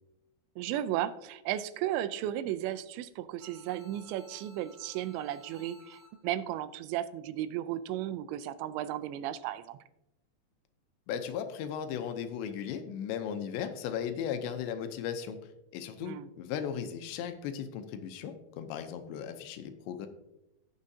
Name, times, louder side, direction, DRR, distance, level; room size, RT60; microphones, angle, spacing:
voice 1, 0.6-9.8 16.0-16.3, right 12 dB, 85° right, 13 dB, 2.8 m, -35 dB
sound 1, 3.4-6.4, left 2 dB, 40° right, 2.3 m, -57 dB
voice 2, 11.1-15.4 15.7-20.1, left 8 dB, 80° left, 8 dB, 2.9 m, -36 dB
17.0 x 6.4 x 2.7 m, 0.90 s
omnidirectional pair, 5.2 m